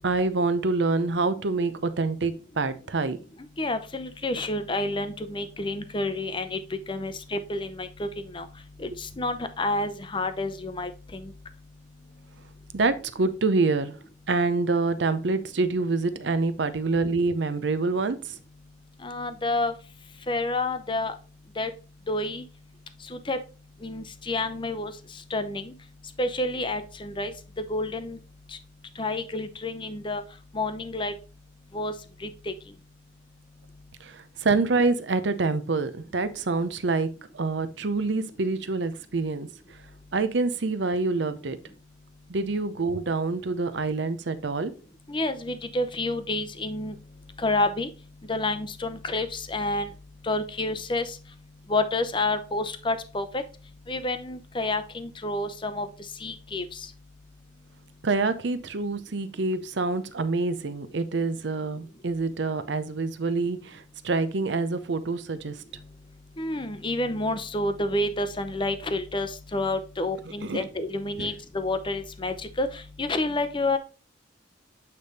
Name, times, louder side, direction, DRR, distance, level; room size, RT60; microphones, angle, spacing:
voice 1, 0.0-3.2 12.7-14.0 14.3-18.4 34.0-39.5 40.1-41.6 42.3-44.7 58.0-65.6 70.4-70.6 71.2-71.3, right 3 dB, 65° right, 12 dB, 0.6 m, -26 dB
voice 2, 3.6-6.6 6.9-8.1 8.3-8.5 8.8-11.3 19.0-19.7 20.3-21.1 21.6-21.7 22.1-22.4 23.1-23.4 23.8-24.9 25.3-25.7 26.2-27.3 27.7-28.2 29.0-30.2 30.5-31.1 31.7-31.9 32.5-32.6 45.1-46.9 47.4-47.9 48.3-49.9 50.2-51.2 51.7-53.4 53.9-55.9 56.2-56.6 66.4-72.7 73.0-73.8, left 2 dB, 25° left, 10 dB, 0.6 m, -29 dB
8.4 x 3.4 x 4.1 m, 0.34 s
head